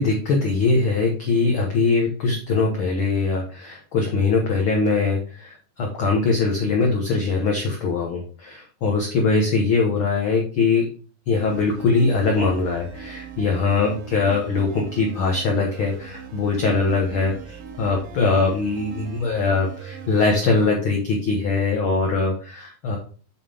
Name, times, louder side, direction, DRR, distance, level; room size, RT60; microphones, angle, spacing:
voice 1, 0.0-10.9 11.3-23.0, left 4 dB, 65° left, 0 dB, 1.3 m, -22 dB
sound 1, 11.3-20.7, right 7 dB, 80° right, 1.2 m, -39 dB
7.5 x 5.5 x 3.4 m, 0.39 s
omnidirectional pair, 4.0 m